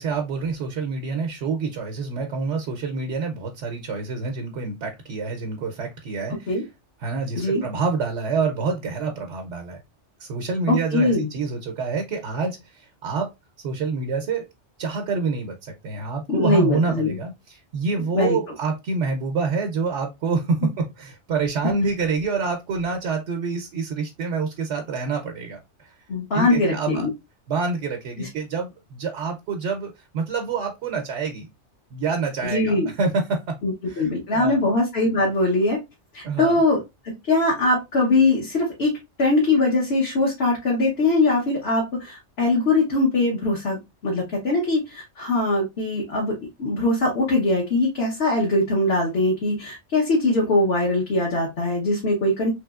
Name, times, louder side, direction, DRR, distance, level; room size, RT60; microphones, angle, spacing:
voice 1, 0.0-6.7 7.0-9.8 10.2-13.3 13.6-14.4 14.8-26.0 26.3-27.1 27.5-31.5 31.9-33.5 33.8-34.6 36.2-36.6, right 4 dB, 75° right, 3 dB, 0.9 m, -27 dB
voice 2, 10.7-11.3 16.3-17.2 18.1-18.4 26.1-27.1 28.2-28.3 32.4-32.9 33.6-35.8 36.1-38.9 39.2-52.5, left 2 dB, 60° left, -3 dB, 1.2 m, -22 dB
3.3 x 3.0 x 2.3 m, 0.22 s
omnidirectional pair, 1.2 m